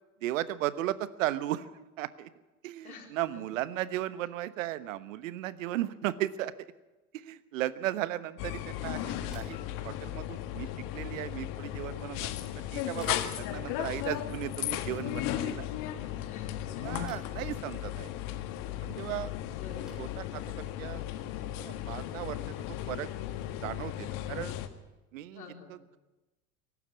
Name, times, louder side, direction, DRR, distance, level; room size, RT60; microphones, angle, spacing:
voice 1, 0.2-1.7 2.0-2.3 2.6-6.5 7.1-15.7 16.8-18.1 18.8-19.3 20.0-21.0 21.6-23.1 23.6-24.5 25.1-25.4 25.7-26.0, right 14 dB, 60° right, 16 dB, 1.2 m, -36 dB
voice 2, 2.8-3.4 16.3-16.9 19.5-20.0 25.3-25.8, left 5 dB, 75° left, 3 dB, 4.3 m, -49 dB
sound 1, 8.4-24.7, left 12 dB, 50° left, 1.8 m, -36 dB
Bicycle / Thump thud, 9.2-22.3, equal, ahead, 7.4 m, -62 dB
23.5 x 12.5 x 9.5 m, 1.1 s
figure-of-eight pair, 80°, 43 cm